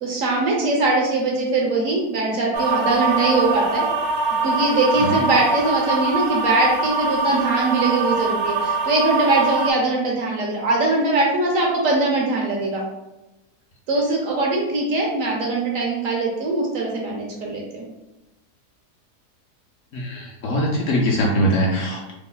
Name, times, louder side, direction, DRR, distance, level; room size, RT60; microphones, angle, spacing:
voice 1, 0.0-3.8 4.4-12.8 13.9-17.9, right 2 dB, 65° right, -1 dB, 1.0 m, -21 dB
sound 1, 2.5-9.7, right 3 dB, 80° right, 1.1 m, -23 dB
voice 2, 19.9-22.1, equal, 65° left, -2 dB, 0.9 m, -22 dB
3.0 x 2.1 x 3.7 m, 0.99 s
omnidirectional pair, 1.7 m